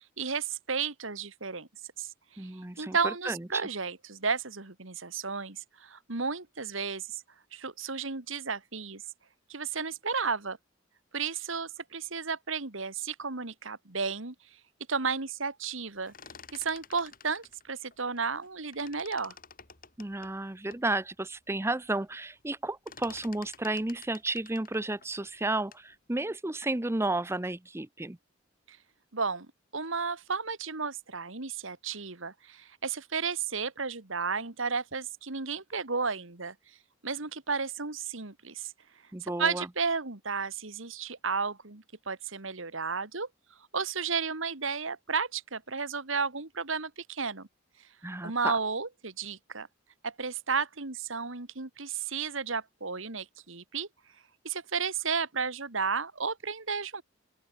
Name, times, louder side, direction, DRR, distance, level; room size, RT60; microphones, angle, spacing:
voice 1, 0.2-1.7 2.0-2.5 2.8-7.2 7.5-9.0 9.5-10.6 11.1-14.3 14.9-16.1 16.5-19.3 28.7-28.8 29.1-29.5 29.7-36.5 37.0-38.7 39.2-43.3 43.7-47.5 48.2-49.7 50.0-53.9 54.4-57.0, right 5 dB, 70° right, 2.1 m, -33 dB
voice 2, 2.4-3.6 20.0-28.2 39.1-39.7 48.0-48.5, right 2 dB, 10° right, 0.6 m, -32 dB
sound 1, 15.9-18.5 18.7-20.9 21.4-21.5 21.7-22.1 22.4-25.9, left 7 dB, 45° left, 5.6 m, -51 dB
open air
head